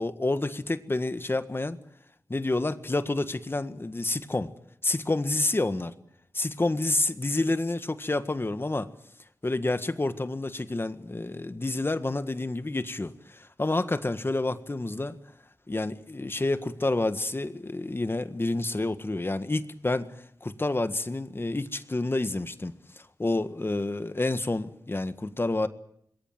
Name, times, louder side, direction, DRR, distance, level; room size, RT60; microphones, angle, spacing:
voice 1, 0.0-1.8 2.3-4.5 4.8-5.9 6.3-8.9 9.4-15.2 15.7-25.7, left 2 dB, 35° left, 10 dB, 1.7 m, -29 dB
27.0 x 21.5 x 7.8 m, 0.71 s
wide cardioid pair, 70°, 7 cm